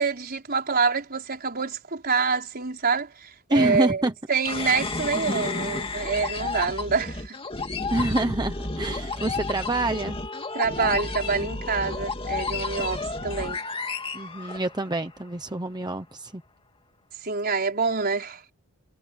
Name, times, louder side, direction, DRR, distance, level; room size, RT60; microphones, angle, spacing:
voice 1, 0.0-7.4 10.5-13.6 17.2-18.4, right 5 dB, 45° right, 4.7 m, -26 dB
voice 2, 3.5-4.1 7.9-10.2 14.1-16.4, right 2 dB, 20° right, 1.0 m, -26 dB
sound 1, 4.4-15.1, left 3 dB, 25° left, 2.4 m, -31 dB
head